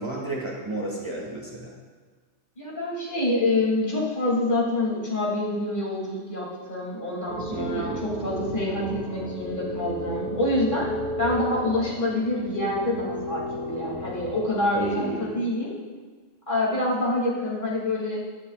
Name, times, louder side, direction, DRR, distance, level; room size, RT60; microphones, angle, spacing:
voice 1, 0.0-1.7 7.5-8.0 14.7-15.3, right 2 dB, 25° right, -3 dB, 1.8 m, -32 dB
voice 2, 2.6-10.9 11.2-15.7 16.5-18.2, left 1 dB, 40° left, -5 dB, 2.9 m, -26 dB
sound 1, 7.3-14.6, equal, 40° right, 2.0 m, -34 dB
17.0 x 11.0 x 2.4 m, 1.4 s
omnidirectional pair, 1.3 m